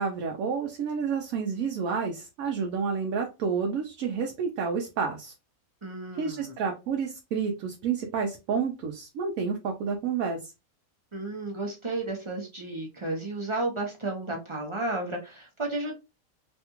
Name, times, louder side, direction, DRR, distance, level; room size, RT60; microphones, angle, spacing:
voice 1, 0.0-5.3 6.2-10.5, right 6 dB, 75° right, 2 dB, 1.0 m, -30 dB
voice 2, 5.8-6.5 11.1-15.9, right 2 dB, 35° right, 0 dB, 0.5 m, -33 dB
3.2 x 2.3 x 2.9 m, 0.27 s
omnidirectional pair, 1.5 m